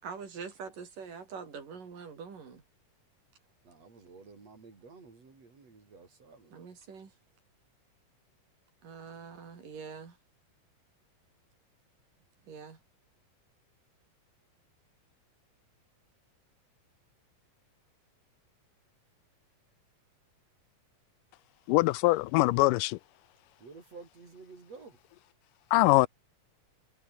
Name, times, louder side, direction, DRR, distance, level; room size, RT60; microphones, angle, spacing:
voice 1, 0.0-2.6 6.5-7.1 8.8-10.2 12.5-12.8, right 6 dB, 80° right, 5.8 m, -44 dB
voice 2, 3.6-6.5 23.6-25.0, right 4 dB, 50° right, 6.3 m, -52 dB
voice 3, 21.7-23.0 25.7-26.1, left 20 dB, 85° left, 2.2 m, -23 dB
omnidirectional pair, 3.8 m